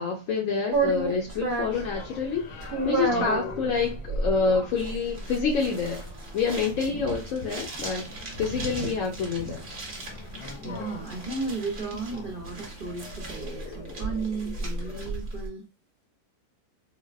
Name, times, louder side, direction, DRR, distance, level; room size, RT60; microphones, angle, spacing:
voice 1, 0.0-6.0 6.3-8.1 8.4-9.6, left 5 dB, 65° left, 0.9 m, -27 dB
sound 1, 0.7-15.5, right 3 dB, 40° right, 0.8 m, -33 dB
sound 2, 1.7-15.0, left 4 dB, 85° left, 1.2 m, -45 dB
voice 2, 3.1-3.4 6.9-7.0 10.6-15.6, right 4 dB, 65° right, 0.5 m, -35 dB
sound 3, 5.6-13.8, equal, 25° left, 0.7 m, -44 dB
3.9 x 2.0 x 2.4 m
omnidirectional pair, 1.6 m